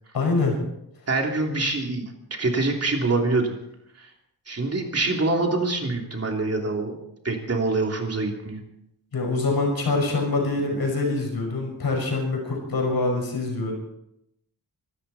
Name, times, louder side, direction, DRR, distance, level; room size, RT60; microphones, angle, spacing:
voice 1, 0.1-0.6 9.1-13.7, left 3 dB, 70° left, 1 dB, 6.1 m, -25 dB
voice 2, 1.1-3.5 4.0-4.1 4.5-7.0 7.2-8.6, right 3 dB, 40° right, 1 dB, 3.2 m, -25 dB
24.5 x 13.0 x 4.3 m, 0.80 s
wide cardioid pair, 145°, 38 cm